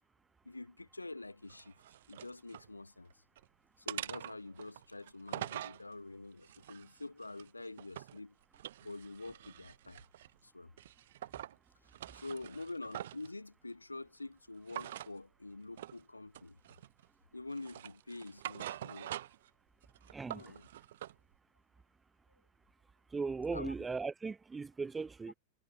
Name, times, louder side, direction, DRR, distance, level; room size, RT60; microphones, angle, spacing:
voice 1, 0.4-1.7 2.1-3.2 3.8-8.3 8.8-10.0 10.4-10.7 12.1-16.6 17.3-19.2 20.3-20.7 23.5-23.7, left 2 dB, 85° left, 1.1 m, -46 dB
sound 1, 1.5-2.7 3.1-3.5 3.9-5.8 6.4-8.2 8.5-10.4 10.8-11.6 11.9-13.3 14.7-15.1 15.8-16.0 16.3-17.1 17.5-19.5 19.8-21.2, right 12 dB, 60° right, 4.1 m, -45 dB
voice 2, 20.1-20.4 23.1-25.3, right 4 dB, 15° right, 3.2 m, -38 dB
figure-of-eight pair, 90°, 0 cm